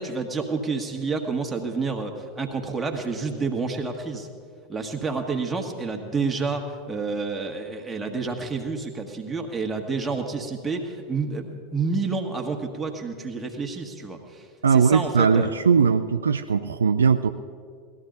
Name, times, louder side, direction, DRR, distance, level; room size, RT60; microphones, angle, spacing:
voice 1, 0.0-4.3 4.7-15.5, right 4 dB, 15° right, 2 dB, 1.7 m, -29 dB
voice 2, 14.6-17.3, right 5 dB, 75° right, 8 dB, 0.4 m, -20 dB
18.5 x 13.5 x 3.9 m, 2.1 s
figure-of-eight pair, 80°, 0 cm